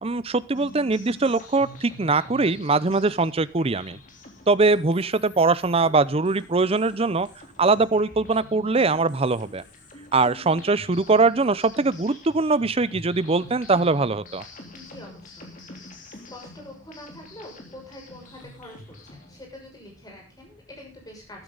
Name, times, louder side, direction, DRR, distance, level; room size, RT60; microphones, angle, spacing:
voice 1, 0.0-4.0 4.5-7.3 7.6-9.6 10.1-14.4, right 3 dB, 30° right, 17 dB, 0.6 m, -22 dB
sound 1, 0.5-19.4, left 1 dB, 40° left, 3.4 m, -46 dB
voice 2, 14.7-21.4, left 1 dB, 20° left, 0 dB, 6.3 m, -45 dB
14.0 x 12.5 x 4.0 m, 0.29 s
head